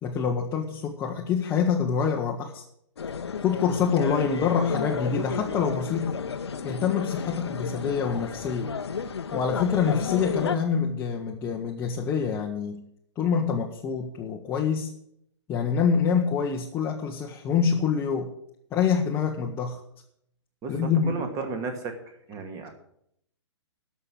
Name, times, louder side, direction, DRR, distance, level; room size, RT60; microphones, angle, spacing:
voice 1, 0.0-2.6 3.4-6.2 6.6-8.7 9.3-12.8 13.2-14.9 15.5-18.3 18.7-19.8 20.7-21.1, left 6 dB, 15° left, -1 dB, 1.0 m, -26 dB
sound 1, 3.0-10.6, left 6 dB, 60° left, 0.9 m, -32 dB
voice 2, 20.6-22.0 22.3-22.7, right 4 dB, 20° right, 6 dB, 1.9 m, -33 dB
13.5 x 5.7 x 8.7 m, 0.73 s
figure-of-eight pair, 120°, 15 cm